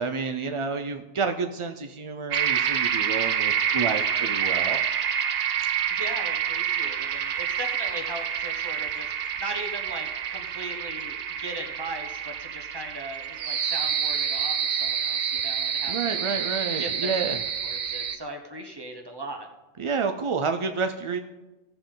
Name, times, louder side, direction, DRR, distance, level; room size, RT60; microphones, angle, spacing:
voice 1, 0.0-4.8 15.9-17.4 19.8-21.2, right 5 dB, 55° right, 6 dB, 0.3 m, -29 dB
sound 1, 2.3-18.2, right 8 dB, 80° right, 1.0 m, -28 dB
voice 2, 5.9-16.2 16.7-17.1 17.6-19.5, right 1 dB, 20° right, 4 dB, 1.1 m, -38 dB
16.5 x 6.9 x 3.8 m, 1.1 s
omnidirectional pair, 1.2 m